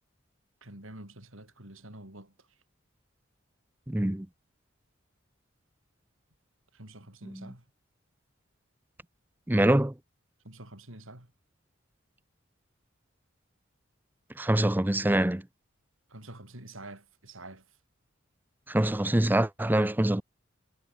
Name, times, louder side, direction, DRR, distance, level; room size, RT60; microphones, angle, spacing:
voice 1, 0.6-2.6 6.7-7.7 10.4-11.3 16.1-17.8, right 1 dB, 80° right, 6.9 m, -47 dB
voice 2, 3.9-4.3 7.2-7.5 9.5-9.9 14.4-15.4 18.7-20.2, right 1 dB, 10° right, 0.6 m, -25 dB
head